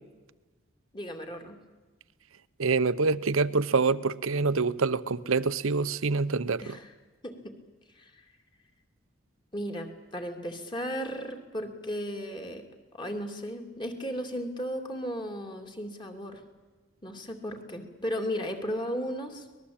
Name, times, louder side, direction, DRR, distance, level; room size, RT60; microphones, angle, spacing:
voice 1, 0.9-1.6 6.6-6.9 7.2-7.5 7.9-8.3 9.5-12.6 12.9-16.4 17.0-19.5, equal, 20° left, 2.7 m, -35 dB
voice 2, 2.6-6.8, right 4 dB, 85° right, 0.9 m, -26 dB
24.5 x 20.0 x 8.7 m
head